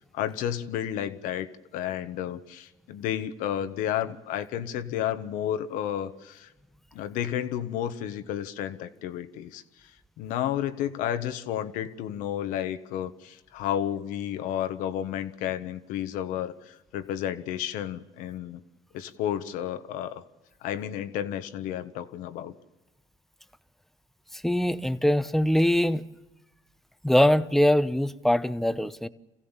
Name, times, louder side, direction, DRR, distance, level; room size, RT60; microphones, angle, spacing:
voice 1, 0.1-6.5 6.9-9.9 10.2-18.6 18.9-20.2 20.6-22.5, left 10 dB, 75° left, 1.4 m, -32 dB
voice 2, 24.3-26.1 27.0-29.1, left 1 dB, ahead, 0.9 m, -23 dB
27.5 x 16.0 x 7.4 m
supercardioid pair, 100°, 14 cm